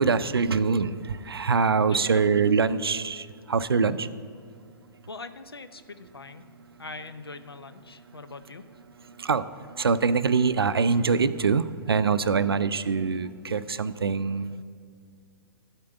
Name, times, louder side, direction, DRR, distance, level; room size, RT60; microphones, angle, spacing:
voice 1, 0.0-4.1 9.2-9.4 9.8-14.6, right 5 dB, 85° right, 14 dB, 0.4 m, -24 dB
voice 2, 1.9-2.5 5.1-6.4 6.8-8.6 12.4-12.7, left 3 dB, 90° left, 10 dB, 0.6 m, -42 dB
12.0 x 4.5 x 7.8 m, 2.2 s
figure-of-eight pair, 120°, 12 cm